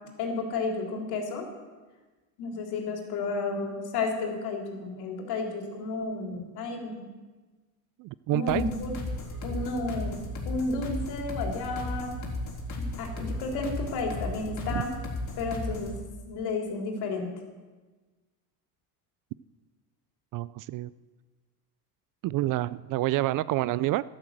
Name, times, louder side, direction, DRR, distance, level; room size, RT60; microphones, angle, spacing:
voice 1, 0.2-1.5 2.4-7.1 8.3-9.0 9.4-12.2 12.7-14.9 15.4-17.3, left 3 dB, 65° left, 2 dB, 3.6 m, -32 dB
voice 2, 8.0-8.6 14.7-14.8 20.3-20.9 22.2-24.0, right 16 dB, 50° right, 18 dB, 0.4 m, -28 dB
sound 1, 8.5-16.0, left 2 dB, 40° left, 3.6 m, -35 dB
12.5 x 12.0 x 7.4 m, 1.3 s
cardioid pair, 115°, 42 cm